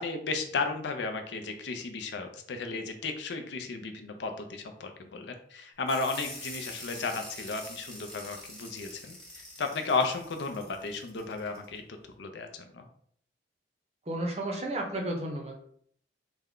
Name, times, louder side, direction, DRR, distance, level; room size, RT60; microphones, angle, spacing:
voice 1, 0.0-11.8 12.2-12.9, left 4 dB, 65° left, 5 dB, 0.4 m, -34 dB
sound 1, 5.9-11.6, left 1 dB, 5° left, 0.7 m, -45 dB
voice 2, 14.1-15.7, right 1 dB, 35° right, 1 dB, 0.6 m, -33 dB
3.4 x 2.1 x 3.6 m, 0.62 s
head